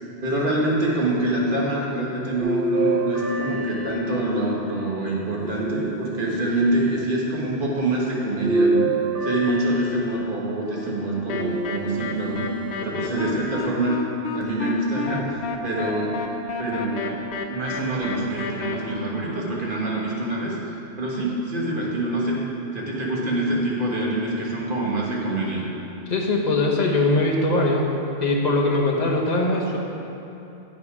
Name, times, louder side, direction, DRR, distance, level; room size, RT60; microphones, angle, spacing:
voice 1, 0.2-8.9 9.2-12.5 12.8-14.0 14.3-16.1 16.6-17.2 17.5-20.6 21.0-22.4 22.7-25.6, right 1 dB, 50° right, -4 dB, 1.6 m, -25 dB
sound 1, 2.4-4.7 5.4-6.4 8.4-10.5 11.4-12.3 12.9-13.0 14.4-14.5, right 2 dB, 80° right, 1.5 m, -26 dB
sound 2, 11.3-18.7, left 5 dB, 70° left, 0.9 m, -31 dB
voice 2, 26.1-27.9 28.2-29.8, left 2 dB, 40° left, -1 dB, 1.1 m, -21 dB
9.0 x 6.1 x 4.8 m, 3.0 s
omnidirectional pair, 1.2 m